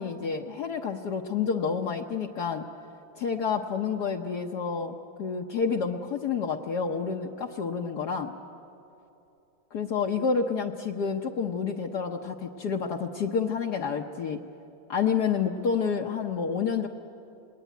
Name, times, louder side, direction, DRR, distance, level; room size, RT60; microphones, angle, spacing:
voice 1, 0.0-2.7 3.2-8.3 9.7-14.4 14.9-16.9, left 6 dB, 60° left, 2 dB, 1.3 m, -29 dB
27.0 x 20.0 x 9.3 m, 2.9 s
omnidirectional pair, 2.2 m